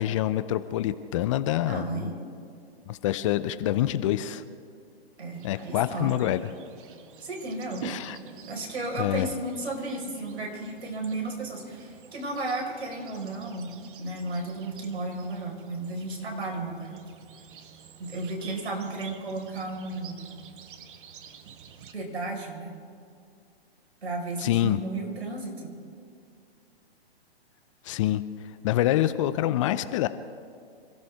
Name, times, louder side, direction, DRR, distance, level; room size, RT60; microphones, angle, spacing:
voice 1, 0.0-2.1 2.9-4.4 5.4-6.4 7.8-8.2 9.0-9.3 24.4-24.8 27.8-28.2 28.6-30.1, left 13 dB, 30° left, 13 dB, 0.6 m, -26 dB
voice 2, 1.6-2.3 5.2-6.2 7.2-7.8 8.5-13.7 14.0-17.0 18.0-20.3 21.9-22.8 24.0-25.7, right 2 dB, 80° right, 0 dB, 5.1 m, -34 dB
sound 1, 5.3-21.9, right 8 dB, 55° right, 1.3 m, -48 dB
27.0 x 14.5 x 3.6 m, 2.4 s
hypercardioid pair, 135°, 32 cm